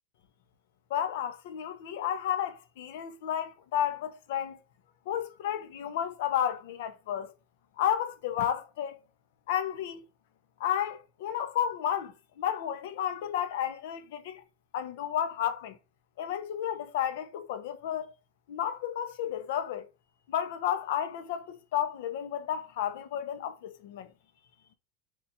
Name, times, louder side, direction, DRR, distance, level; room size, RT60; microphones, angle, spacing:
voice 1, 0.9-4.6 5.1-7.3 7.8-8.9 9.5-10.0 10.6-14.4 14.7-15.8 16.2-18.1 18.5-19.8 20.3-24.1, left 10 dB, 70° left, 0.6 m, -32 dB
2.9 x 2.3 x 4.0 m
supercardioid pair, 145°, 0 cm